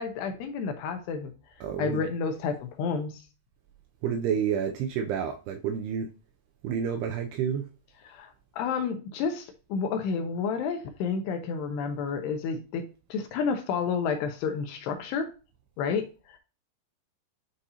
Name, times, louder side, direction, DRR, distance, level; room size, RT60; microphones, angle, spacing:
voice 1, 0.0-1.3 1.8-3.2 8.0-12.8 13.1-15.3 15.8-16.4, left 5 dB, 80° left, 2.6 m, -30 dB
voice 2, 1.6-2.1 4.0-6.1 6.6-7.7, right 7 dB, 80° right, 2.4 m, -29 dB
9.7 x 4.1 x 2.8 m
omnidirectional pair, 5.2 m